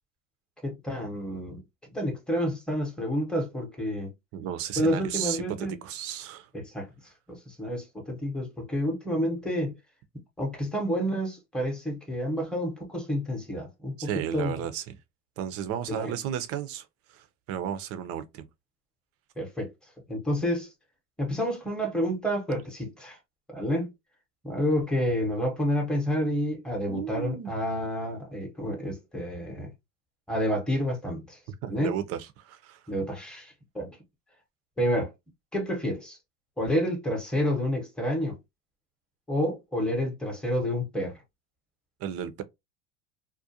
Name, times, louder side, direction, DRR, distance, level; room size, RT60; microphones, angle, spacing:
voice 1, 0.6-4.1 4.8-5.7 6.5-6.9 7.3-9.7 10.4-14.6 15.9-16.1 19.4-19.7 20.1-20.7 21.2-23.2 23.5-23.9 24.4-29.7 30.3-31.4 31.7-31.9 32.9-34.0 34.8-35.1 35.5-36.2 36.6-38.4 39.3-41.2, equal, ahead, 0.8 m, -29 dB
voice 2, 4.3-6.5 14.0-14.9 15.4-16.9 17.1-18.4 26.9-27.6 31.6-32.8 42.0-42.4, right 9 dB, 40° right, 0.5 m, -33 dB
2.4 x 2.1 x 2.7 m
supercardioid pair, 110°, 37 cm